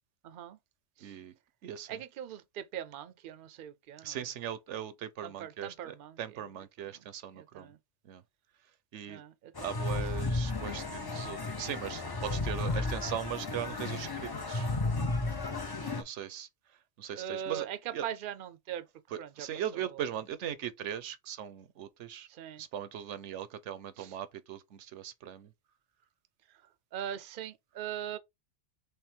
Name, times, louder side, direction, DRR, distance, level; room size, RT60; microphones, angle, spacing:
voice 1, 0.2-0.6 1.0-1.1 1.9-4.3 5.2-6.5 6.9-7.0 7.3-7.8 9.1-10.0 15.7-16.0 17.2-18.9 19.2-19.5 19.7-20.0 22.3-22.6 24.0-24.2 26.9-28.2, right 10 dB, 55° right, 0.7 m, -41 dB
voice 2, 1.0-1.3 1.6-2.0 4.0-7.7 8.1-8.2 8.9-9.2 9.6-14.7 15.9-16.5 17.0-17.7 17.9-18.0 19.1-22.3 22.6-25.5, right 10 dB, 85° right, 1.0 m, -39 dB
sound 1, 9.6-16.0, left 2 dB, 25° left, 0.5 m, -33 dB
3.5 x 3.2 x 4.4 m
omnidirectional pair, 1.2 m